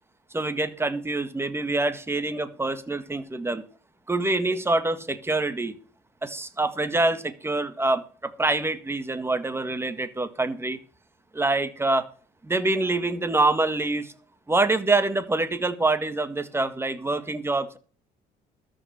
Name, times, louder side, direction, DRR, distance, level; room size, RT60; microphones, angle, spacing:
voice 1, 0.3-3.6 4.1-5.7 6.2-10.8 11.3-12.1 12.4-14.1 14.5-17.8, right 2 dB, 15° right, 1.8 m, -25 dB
13.5 x 5.9 x 7.5 m
cardioid pair, 110°, 17 cm